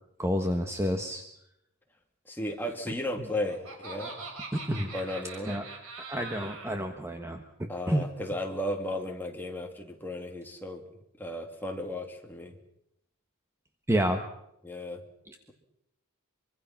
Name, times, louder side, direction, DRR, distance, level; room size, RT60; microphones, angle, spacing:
voice 1, 0.2-1.2 4.5-4.9 5.5-5.6 6.1-7.4 7.9-8.0 13.9-14.2, equal, 10° right, 5 dB, 1.4 m, -29 dB
voice 2, 2.3-4.2 4.9-5.6 7.7-10.8 11.2-12.5 14.6-15.0, left 1 dB, 10° left, 2 dB, 2.6 m, -35 dB
Laughter, 3.0-6.8, right 3 dB, 65° right, 5.5 m, -42 dB
24.5 x 24.5 x 6.0 m, 0.79 s
head